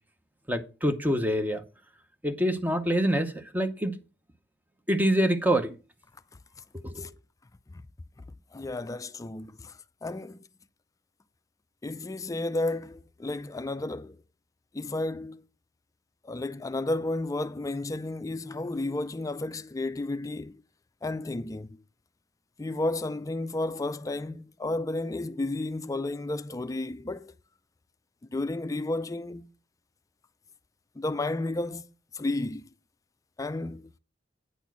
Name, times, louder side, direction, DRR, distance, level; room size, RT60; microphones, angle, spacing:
voice 1, 0.5-1.6 2.2-4.0 4.9-5.8 6.7-7.1, equal, 10° right, 0.8 m, -26 dB
voice 2, 8.5-9.7 10.0-10.4 11.8-14.2 14.7-15.4 16.2-20.6 21.0-21.8 22.6-27.3 28.3-29.5 31.0-31.9 32.1-32.6 33.4-33.9, left 2 dB, 20° left, 0.4 m, -32 dB
9.2 x 4.4 x 5.9 m
head